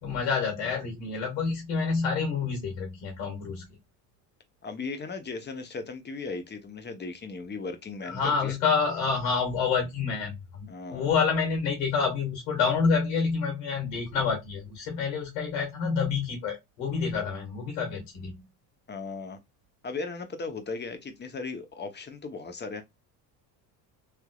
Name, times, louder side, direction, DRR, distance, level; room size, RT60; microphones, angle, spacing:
voice 1, 0.0-3.6 8.1-18.3, left 5 dB, 85° left, 1.6 m, -28 dB
voice 2, 4.6-8.5 10.7-11.1 18.9-19.4 19.8-22.8, left 4 dB, 20° left, 0.8 m, -37 dB
3.3 x 2.8 x 2.3 m
supercardioid pair, 85°, 47 cm